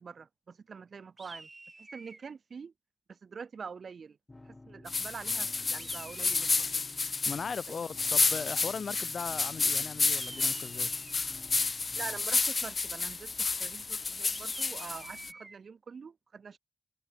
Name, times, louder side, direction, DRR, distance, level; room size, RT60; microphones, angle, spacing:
voice 1, 0.0-1.5 1.8-2.7 3.1-4.2 4.5-6.5 6.7-6.8 7.7-7.8 11.9-16.6, right 5 dB, 80° right, 2.0 m, -45 dB
sound 1, 1.2-2.3 5.8-6.8 10.0-11.3 14.3-15.6, right 3 dB, 35° right, 2.9 m, -49 dB
sound 2, 4.3-12.3, left 2 dB, 25° left, 4.7 m, -53 dB
sound 3, 4.9-15.3, left 4 dB, 50° left, 0.5 m, -31 dB
voice 2, 7.2-10.9, left 6 dB, 80° left, 1.4 m, -38 dB
wide cardioid pair, 110°, 0 cm